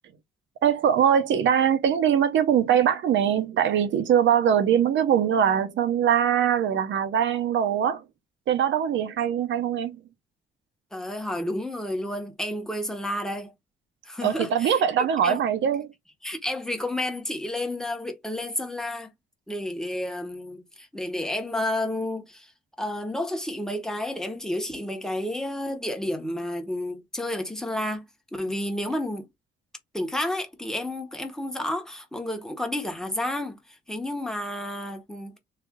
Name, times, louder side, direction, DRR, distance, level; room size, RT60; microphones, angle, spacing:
voice 1, 0.6-8.0 8.5-10.0 14.2-15.9, right 9 dB, 70° right, 0.8 m, -22 dB
voice 2, 10.9-13.5 14.0-14.8 15.2-15.4 16.2-19.1 19.5-22.5 22.8-28.1 28.3-29.3 29.9-33.6 33.9-35.4, left 1 dB, 5° left, 1.0 m, -31 dB
3.3 x 2.4 x 3.6 m
cardioid pair, 90°, 20 cm